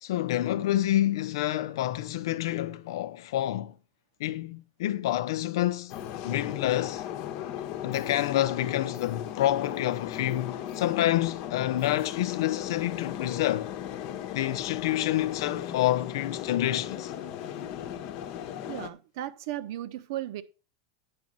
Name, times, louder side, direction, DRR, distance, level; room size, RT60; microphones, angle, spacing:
voice 1, 0.0-3.7 4.2-6.0 6.2-7.0 7.8-13.7 14.3-17.1, left 14 dB, 70° left, 0.8 m, -28 dB
sound 1, 5.9-18.9, left 10 dB, 45° left, 1.0 m, -37 dB
voice 2, 18.7-20.4, right 13 dB, 60° right, 1.0 m, -35 dB
9.8 x 6.2 x 5.3 m
supercardioid pair, 165°, 2 cm